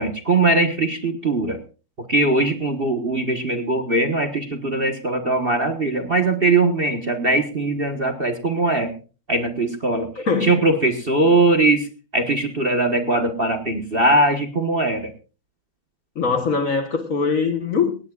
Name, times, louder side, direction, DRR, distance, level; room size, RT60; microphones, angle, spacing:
voice 1, 0.0-1.6 2.1-8.9 9.3-11.9 12.1-15.1, right 2 dB, 30° right, 1.3 m, -20 dB
voice 2, 10.2-10.6 11.2-11.4 16.1-18.0, left 5 dB, 45° left, 1.4 m, -22 dB
18.0 x 17.5 x 2.4 m
omnidirectional pair, 2.3 m